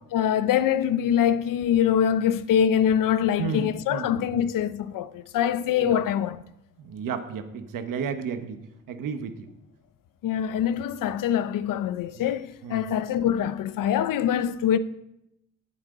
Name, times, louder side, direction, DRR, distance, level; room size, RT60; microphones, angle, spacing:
voice 1, 0.1-6.4 10.2-14.8, left 9 dB, 80° left, 0.7 m, -24 dB
voice 2, 3.4-4.4 5.8-6.0 6.8-8.6 8.9-9.5 12.6-12.8, right 6 dB, 85° right, 1.3 m, -32 dB
18.5 x 7.8 x 3.9 m
cardioid pair, 125°, 32 cm